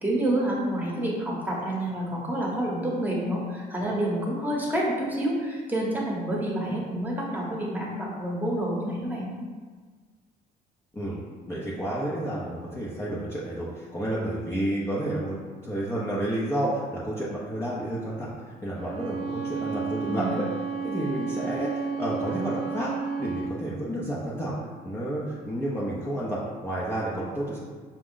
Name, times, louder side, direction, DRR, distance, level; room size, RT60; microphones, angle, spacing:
voice 1, 0.0-9.4 20.1-20.4, right 1 dB, 10° right, -4 dB, 1.1 m, -28 dB
voice 2, 11.5-15.4 15.6-18.3 18.6-20.4 20.8-24.5 24.8-27.6, right 1 dB, 15° left, -7 dB, 0.7 m, -30 dB
Bowed string instrument, 18.8-23.6, right 5 dB, 80° right, 0.5 m, -32 dB
5.1 x 2.3 x 3.7 m, 1.5 s
cardioid pair, 110°, 17 cm